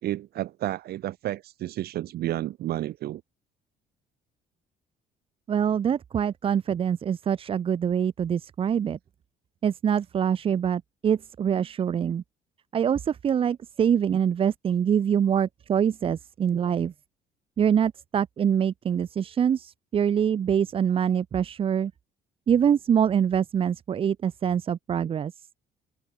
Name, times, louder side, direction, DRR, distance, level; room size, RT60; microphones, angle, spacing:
voice 1, 0.0-3.2, right 14 dB, 65° right, 1.5 m, -31 dB
voice 2, 5.5-9.0 9.6-12.2 12.7-16.9 17.6-21.9 22.5-25.3, right 8 dB, 35° right, 0.5 m, -24 dB
cardioid pair, 110°, 17 cm